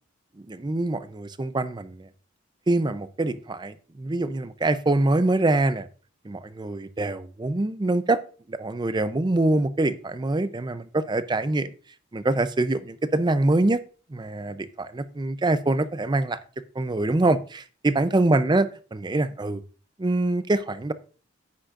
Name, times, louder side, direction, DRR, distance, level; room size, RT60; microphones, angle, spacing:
voice 1, 0.5-2.1 2.7-5.9 6.3-8.2 8.5-11.7 12.1-13.8 14.1-16.4 16.8-19.6 20.0-20.9, right 2 dB, 20° right, 13 dB, 0.5 m, -24 dB
9.7 x 8.9 x 2.4 m, 0.39 s
head